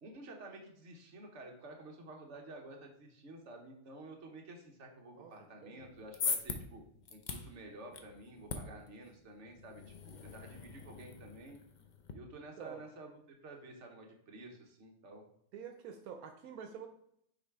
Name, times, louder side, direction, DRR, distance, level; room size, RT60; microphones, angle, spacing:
voice 1, 0.0-6.8 7.1-11.6 12.1-15.2, right 2 dB, 55° right, 1 dB, 1.4 m, -51 dB
sound 1, 5.8-12.1, left 5 dB, 50° left, 0.5 m, -42 dB
voice 2, 15.5-16.9, right 7 dB, 85° right, 5 dB, 1.1 m, -47 dB
6.4 x 3.4 x 4.7 m, 0.73 s
omnidirectional pair, 1.5 m